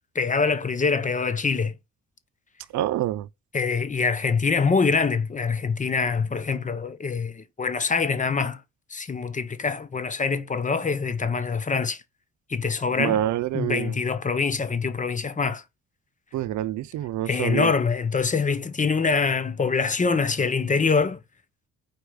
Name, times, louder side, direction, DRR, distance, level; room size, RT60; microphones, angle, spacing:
voice 1, 0.1-1.7 3.5-8.6 8.9-12.0 12.5-13.2 13.5-15.6 17.3-21.2, left 5 dB, 25° left, 0.7 m, -24 dB
voice 2, 2.7-3.3 13.0-14.0 16.3-17.7, right 13 dB, 70° right, 0.6 m, -26 dB
4.9 x 4.4 x 5.0 m
cardioid pair, 90°, 30 cm